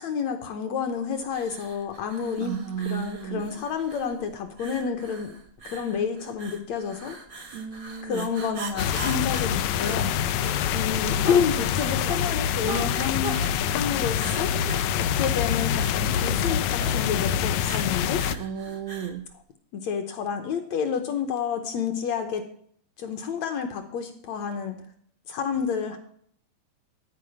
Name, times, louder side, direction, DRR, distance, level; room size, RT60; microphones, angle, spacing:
voice 1, 0.0-2.6 2.8-5.3 5.6-7.2 8.0-10.1 10.7-13.4 13.7-14.5 15.0-18.2 19.7-22.5 23.0-24.8 25.3-26.0, left 7 dB, 65° left, 6 dB, 1.8 m, -29 dB
sound 1, 1.3-19.2, right 4 dB, 60° right, 0.9 m, -41 dB
voice 2, 2.4-3.5 7.5-8.3 18.3-19.3, right 8 dB, 75° right, 5 dB, 1.6 m, -33 dB
sound 2, 8.8-18.4, left 9 dB, 90° left, 1.6 m, -25 dB
14.0 x 4.9 x 7.9 m, 0.63 s
omnidirectional pair, 3.9 m